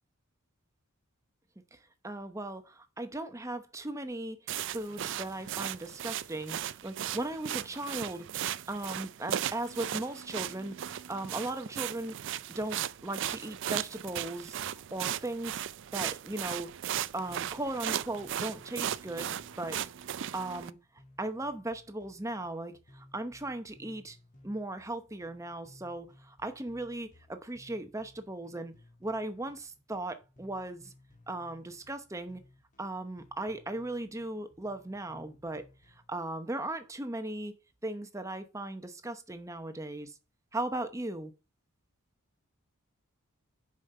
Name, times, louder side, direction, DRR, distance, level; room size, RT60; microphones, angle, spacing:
voice 1, 2.0-4.4 4.7-6.6 6.8-8.3 8.7-12.2 12.5-14.6 14.9-15.6 15.9-16.7 17.1-19.8 20.3-20.8 21.2-24.2 24.4-28.7 29.0-30.9 31.3-32.4 32.8-35.7 36.1-37.5 37.8-40.2 40.5-41.3, right 2 dB, 15° right, 0.8 m, -37 dB
sound 1, 4.5-20.7, right 10 dB, 55° right, 0.4 m, -37 dB
sound 2, 17.3-36.1, left 1 dB, 35° left, 1.6 m, -60 dB
7.1 x 5.2 x 5.6 m
head